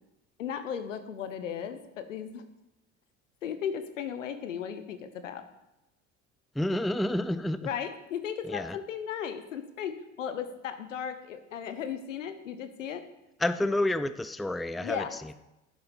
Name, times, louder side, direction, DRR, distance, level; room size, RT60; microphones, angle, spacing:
voice 1, 0.4-2.4 3.4-5.4 7.6-13.0 14.8-15.2, left 8 dB, 80° left, 10 dB, 1.2 m, -36 dB
voice 2, 6.6-7.6 8.5-8.8 13.4-15.0, left 1 dB, ahead, 13 dB, 0.5 m, -29 dB
12.0 x 10.0 x 5.4 m, 0.93 s
figure-of-eight pair, 65°, 37 cm